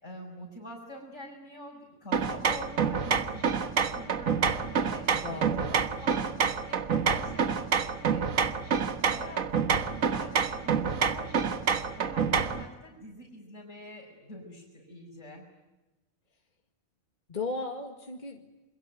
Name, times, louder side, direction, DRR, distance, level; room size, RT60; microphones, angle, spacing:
voice 1, 0.0-11.7 12.0-15.5, left 1 dB, 70° left, -3 dB, 6.1 m, -46 dB
sound 1, 2.1-12.7, right 6 dB, 80° right, 1.8 m, -28 dB
voice 2, 5.1-5.8 17.3-18.5, left 3 dB, 35° left, 3 dB, 2.1 m, -36 dB
28.5 x 22.5 x 9.2 m, 1.1 s
omnidirectional pair, 1.4 m